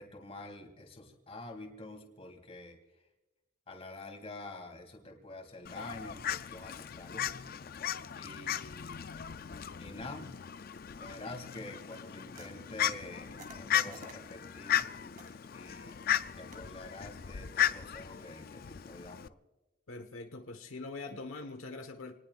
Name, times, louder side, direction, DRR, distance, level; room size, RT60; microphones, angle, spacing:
voice 1, 0.0-2.8 3.7-7.4 7.8-9.1 9.8-10.3 10.9-15.2 15.5-16.1 16.3-19.4, left 2 dB, 30° left, 3 dB, 2.7 m, -47 dB
Fowl, 5.6-19.3, left 10 dB, 45° left, 0.4 m, -36 dB
sound 1, 11.9-17.8, right 3 dB, 40° right, 2.3 m, -56 dB
voice 2, 19.9-22.1, left 3 dB, 85° left, 5 dB, 1.3 m, -43 dB
27.5 x 19.0 x 2.5 m, 1.0 s
head